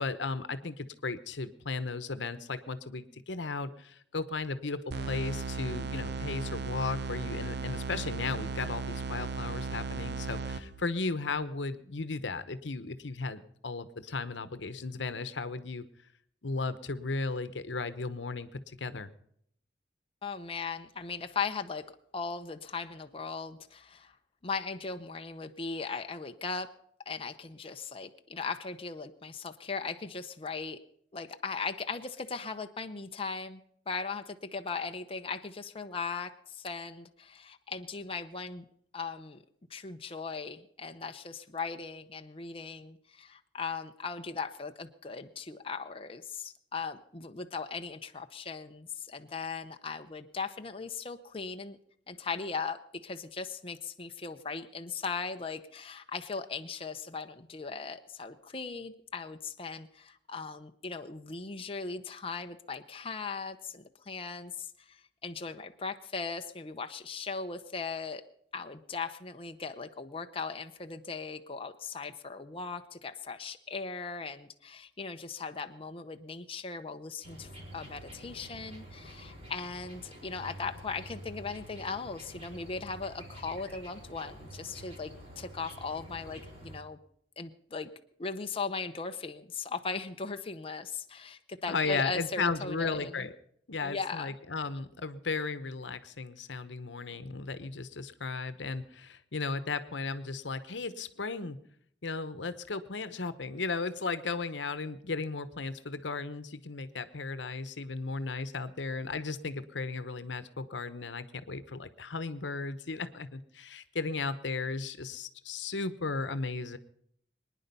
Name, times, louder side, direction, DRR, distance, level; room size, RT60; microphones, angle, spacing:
voice 1, 0.0-15.8 16.4-19.1 91.7-93.3 93.7-101.6 102.0-116.8, left 4 dB, 80° left, 13 dB, 1.0 m, -35 dB
sound 1, 4.9-10.9, right 4 dB, 65° right, 0.9 m, -36 dB
voice 2, 20.2-24.2 24.4-26.7 27.1-30.8 31.1-33.6 33.9-38.6 38.9-39.4 39.7-51.8 52.1-68.2 68.5-87.0 87.4-87.9 88.2-93.3 93.8-94.3, left 4 dB, 30° left, 6 dB, 0.7 m, -38 dB
sound 2, 77.2-86.8, equal, 35° right, 5.1 m, -48 dB
23.5 x 10.0 x 5.5 m, 0.69 s
head